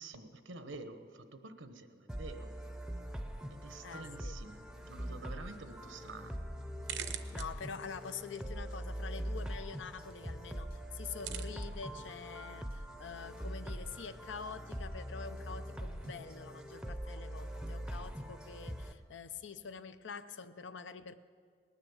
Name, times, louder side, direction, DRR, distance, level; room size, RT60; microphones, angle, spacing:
voice 1, 0.0-2.6 3.5-6.4 7.3-7.4, right 3 dB, 85° right, 9 dB, 1.0 m, -49 dB
sound 1, 2.1-18.9, equal, 5° right, 0.6 m, -43 dB
voice 2, 3.8-4.4 7.0-21.1, left 6 dB, 75° left, 11 dB, 0.6 m, -46 dB
sound 2, 6.3-16.3, right 10 dB, 65° right, 0.7 m, -51 dB
sound 3, 7.4-18.3, left 1 dB, 50° left, 1.9 m, -65 dB
19.0 x 10.0 x 7.1 m, 2.1 s
head